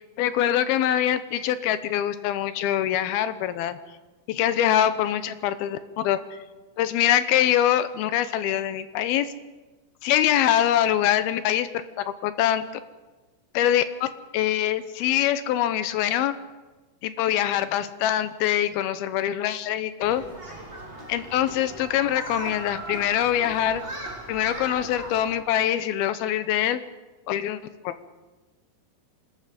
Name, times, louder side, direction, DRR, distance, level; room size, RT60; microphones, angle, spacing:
voice 1, 0.2-3.8 4.3-6.4 6.8-9.3 10.0-11.7 12.0-12.6 13.5-14.1 14.3-16.3 17.0-20.2 21.1-23.8 24.3-26.8 27.3-27.6 27.8-28.0, left 11 dB, 75° left, 12 dB, 2.5 m, -24 dB
Human group actions, 20.0-25.4, right 2 dB, 15° right, 3.6 m, -38 dB
26.5 x 19.5 x 5.1 m, 1.2 s
omnidirectional pair, 4.9 m